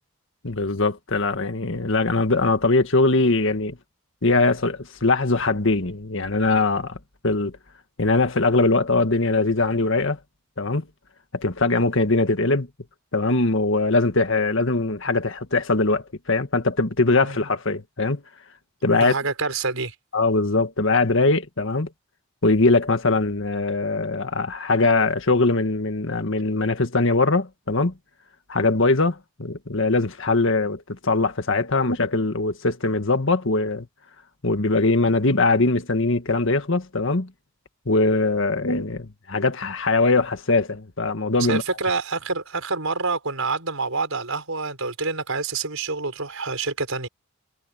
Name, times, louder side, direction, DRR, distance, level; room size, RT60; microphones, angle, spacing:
voice 1, 0.4-3.8 4.2-7.0 7.2-7.5 8.0-10.2 10.6-10.8 11.3-12.7 13.1-18.2 18.8-19.1 20.1-21.9 22.4-27.9 28.5-33.9 34.4-37.3 37.9-41.6, left 3 dB, 60° left, 1.8 m, -21 dB
voice 2, 18.9-19.9 41.5-47.1, right 4 dB, 75° right, 5.2 m, -27 dB
head